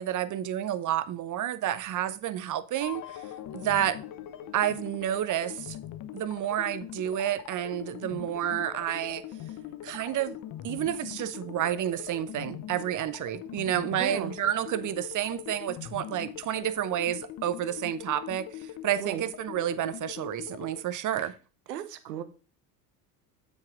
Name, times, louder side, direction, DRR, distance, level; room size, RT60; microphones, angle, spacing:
voice 1, 0.0-3.2 3.5-4.0 4.5-5.8 6.1-9.2 9.8-10.4 10.6-21.3, right 11 dB, 40° right, 0.8 m, -30 dB
sound 1, 2.8-20.8, left 11 dB, 40° left, 0.9 m, -42 dB
voice 2, 14.0-14.3 19.0-19.3 21.7-22.2, right 10 dB, 80° right, 1.0 m, -35 dB
7.4 x 6.3 x 3.6 m
hypercardioid pair, 75°, 48 cm